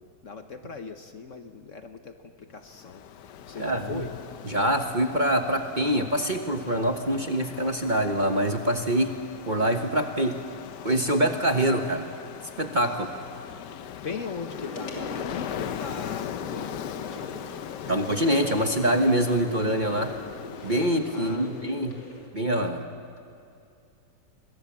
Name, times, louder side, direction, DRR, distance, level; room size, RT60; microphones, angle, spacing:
voice 1, 0.0-3.0 3.5-4.1 12.8-17.6 21.1-21.6, left 5 dB, 50° left, 7 dB, 1.3 m, -40 dB
Ocean, 2.6-21.7, left 10 dB, 70° left, 1.3 m, -40 dB
voice 2, 3.6-4.0 4.4-9.1 9.4-10.4 10.8-12.1 12.6-13.1 17.9-20.1 20.6-22.0 22.3-22.8, right 1 dB, 30° right, 4 dB, 1.2 m, -25 dB
sound 1, 14.5-22.3, left 1 dB, 90° left, 3.9 m, -41 dB
27.5 x 21.5 x 7.3 m, 2.6 s
omnidirectional pair, 1.9 m